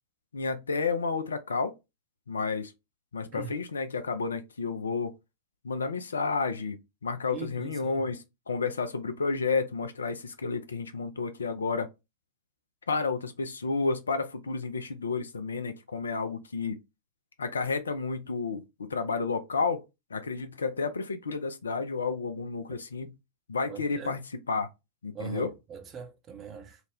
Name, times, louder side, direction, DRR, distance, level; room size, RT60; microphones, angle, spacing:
voice 1, 0.3-1.7 2.3-2.7 3.1-5.1 5.6-11.9 12.9-16.8 17.4-19.8 20.1-23.1 23.5-24.7 25.0-25.5, left 4 dB, 75° left, 0.4 m, -31 dB
voice 2, 7.3-8.1 23.7-24.1 25.1-26.8, right 7 dB, 30° right, 0.6 m, -41 dB
2.4 x 2.1 x 3.4 m
figure-of-eight pair, 90°, 0 cm